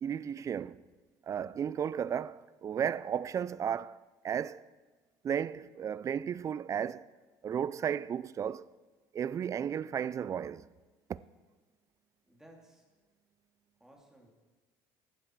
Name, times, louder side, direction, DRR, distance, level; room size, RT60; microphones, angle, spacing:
voice 1, 0.0-0.8 1.3-4.0 4.2-4.7 5.2-7.1 7.4-8.7 9.1-10.7 11.1-11.2, right 8 dB, 35° right, 0.4 m, -34 dB
voice 2, 12.2-12.9 13.8-14.3, right 1 dB, 5° right, 2.8 m, -58 dB
15.0 x 8.8 x 4.6 m
supercardioid pair, 85°, 9 cm